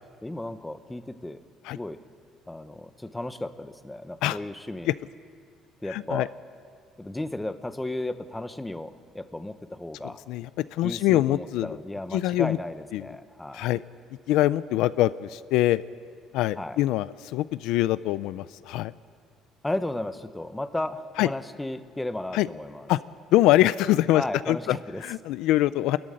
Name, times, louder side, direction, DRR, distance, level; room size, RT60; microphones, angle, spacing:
voice 1, 0.2-1.4 1.7-2.0 2.5-4.9 5.8-6.3 7.0-10.2 10.8-13.6 16.6-16.8 19.6-22.9 24.1-25.0, left 1 dB, 10° left, 11 dB, 0.9 m, -34 dB
voice 2, 5.9-6.3 10.3-11.8 12.1-12.6 12.9-13.1 13.5-13.8 14.3-15.8 16.3-18.9 21.2-21.3 22.3-22.5 22.9-23.0 23.3-24.8 25.0-26.0, left 15 dB, 85° left, 16 dB, 0.4 m, -24 dB
23.5 x 14.0 x 10.0 m, 2.2 s
cardioid pair, 130°, 0 cm